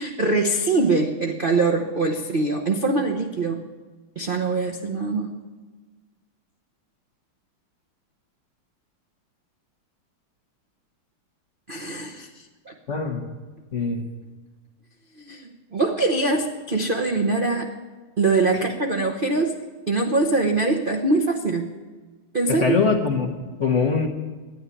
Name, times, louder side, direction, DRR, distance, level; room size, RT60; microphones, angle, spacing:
voice 1, 0.0-3.6 4.2-5.3 11.7-12.7 15.2-17.7 18.2-19.6 19.9-21.7 22.3-22.8, right 3 dB, 50° right, 2 dB, 0.6 m, -23 dB
voice 2, 12.9-13.3 13.7-14.1 22.5-24.1, left 5 dB, 40° left, 3 dB, 1.2 m, -23 dB
12.0 x 10.5 x 9.8 m, 1.3 s
omnidirectional pair, 2.4 m